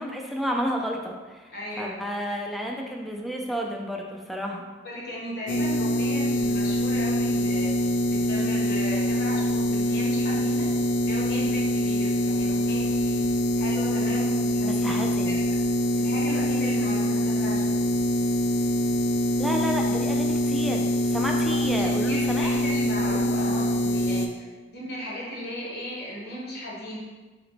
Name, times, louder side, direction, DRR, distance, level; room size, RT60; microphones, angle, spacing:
voice 1, 0.0-1.5 1.8-4.6 14.6-15.4 19.4-22.6, equal, ahead, 0 dB, 0.4 m, -31 dB
voice 2, 1.5-2.1 4.8-10.7 11.0-13.2 13.6-15.0 15.3-15.4 16.0-17.9 21.8-24.3 24.7-27.0, left 1 dB, 60° left, -5 dB, 1.2 m, -36 dB
sound 1, 5.5-24.3, left 1 dB, 85° left, 0.4 m, -24 dB
3.9 x 3.0 x 3.3 m, 1.2 s
head